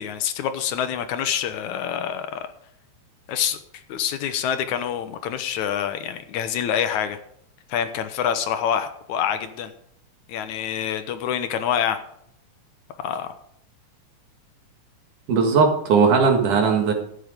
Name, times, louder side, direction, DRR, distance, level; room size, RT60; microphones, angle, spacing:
voice 1, 0.0-2.5 3.3-3.6 3.9-7.2 7.7-9.7 10.3-12.0 13.0-13.3, left 9 dB, 75° left, 9 dB, 2.1 m, -26 dB
voice 2, 15.3-16.9, right 5 dB, 75° right, 3 dB, 3.3 m, -18 dB
13.0 x 9.1 x 5.1 m, 0.72 s
omnidirectional pair, 3.6 m